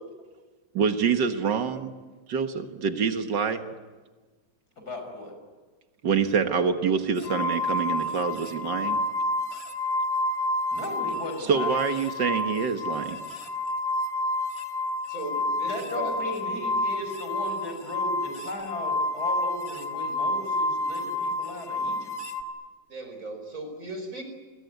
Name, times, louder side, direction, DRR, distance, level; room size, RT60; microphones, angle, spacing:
voice 1, 0.7-1.9 2.3-3.6 6.0-9.0 11.5-13.2, right 6 dB, 75° right, 7 dB, 2.1 m, -26 dB
voice 2, 4.8-5.3 10.7-11.8 15.7-22.1, left 1 dB, 60° left, 5 dB, 6.3 m, -36 dB
sound 1, 7.2-11.2 11.5-22.4, left 2 dB, 35° left, 1.9 m, -29 dB
voice 3, 15.1-16.8 22.9-24.2, right 2 dB, 45° right, 6 dB, 5.2 m, -38 dB
29.0 x 21.5 x 9.4 m, 1.3 s
omnidirectional pair, 1.9 m